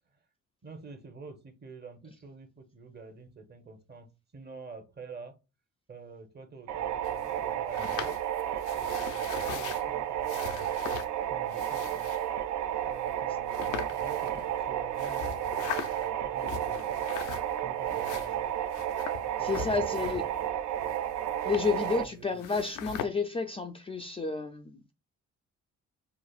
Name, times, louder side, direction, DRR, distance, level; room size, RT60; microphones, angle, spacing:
voice 1, 0.6-5.4 5.9-8.1 8.7-11.0 11.3-12.1 12.8-17.1 17.6-18.5 19.2-20.5 20.8-21.0 21.8-22.4, right 4 dB, 35° right, 0.8 m, -48 dB
sound 1, 6.7-22.0, right 11 dB, 75° right, 0.5 m, -32 dB
sound 2, 7.0-9.8 10.2-11.1 11.5-12.2 13.0-13.1 13.5-14.6 15.0-16.1 16.4-17.6 17.9-20.5 20.7-22.1 22.4-23.1, left 8 dB, 90° left, 0.5 m, -40 dB
voice 2, 19.4-20.2 21.4-24.9, left 4 dB, 20° left, 0.3 m, -31 dB
4.9 x 2.4 x 2.3 m
cardioid pair, 90°, 30 cm